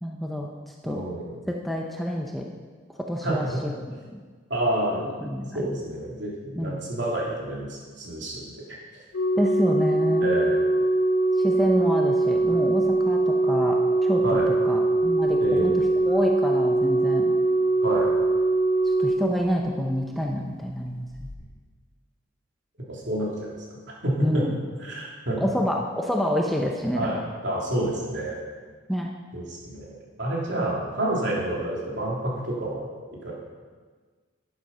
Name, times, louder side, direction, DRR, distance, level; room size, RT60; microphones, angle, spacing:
voice 1, 0.0-1.0 1.5-2.5 3.1-3.5 4.1-4.2 5.2-5.8 6.6-6.8 9.4-10.3 11.4-14.4 14.6-17.3 18.8-21.3 24.2-24.5 25.4-27.2 28.9-29.1, equal, ahead, 0 dB, 0.8 m, -28 dB
voice 2, 0.8-1.3 3.2-3.6 4.5-5.3 5.5-9.0 10.2-10.6 14.2-14.5 15.4-15.8 17.8-18.1 22.9-23.6 23.9-24.4 24.8-25.4 26.9-28.4 29.3-32.8 33.2-33.3, right 1 dB, 60° right, -4 dB, 3.4 m, -29 dB
Organ, 9.1-20.0 21.2-21.3, right 2 dB, 70° left, 1.1 m, -22 dB
11.5 x 10.5 x 5.6 m, 1.5 s
head